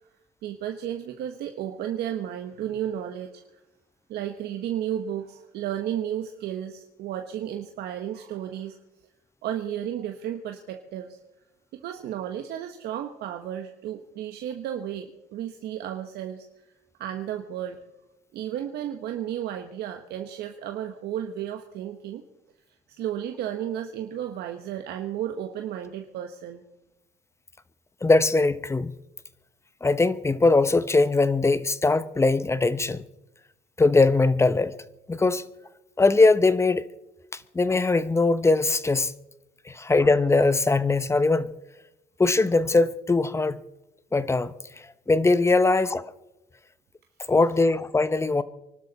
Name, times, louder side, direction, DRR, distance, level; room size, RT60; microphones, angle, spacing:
voice 1, 0.4-3.4 4.1-8.7 9.4-11.2 11.7-16.5 17.0-17.8 18.3-22.2 23.0-26.6, right 10 dB, 75° right, 1.2 m, -33 dB
voice 2, 28.0-28.9 29.8-33.0 33.8-34.7 35.1-35.4 36.0-36.8 37.5-39.1 39.7-41.5 42.2-43.6 44.1-44.5 45.1-46.0 47.3-48.4, left 3 dB, 15° left, 0.8 m, -21 dB
25.0 x 12.0 x 4.1 m
cardioid pair, 110°, 17 cm